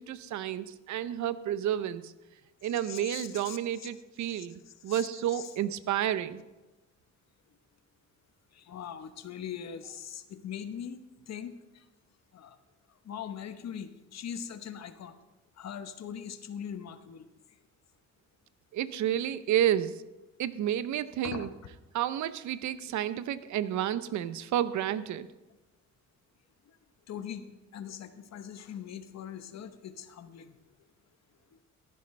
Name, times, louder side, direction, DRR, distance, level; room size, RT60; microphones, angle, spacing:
voice 1, 0.0-2.1 2.6-6.4 18.7-20.0 20.4-21.5 21.9-25.3, right 11 dB, 70° right, 14 dB, 0.7 m, -31 dB
voice 2, 2.8-3.9 4.3-4.5 4.9-5.5 8.5-11.0 11.3-11.8 12.3-12.6 13.0-15.2 15.6-17.3 21.2-21.5 27.1-27.5 27.7-30.6, left 8 dB, 60° left, 10 dB, 1.0 m, -41 dB
15.0 x 11.0 x 3.3 m, 1.1 s
cardioid pair, 90°, 30 cm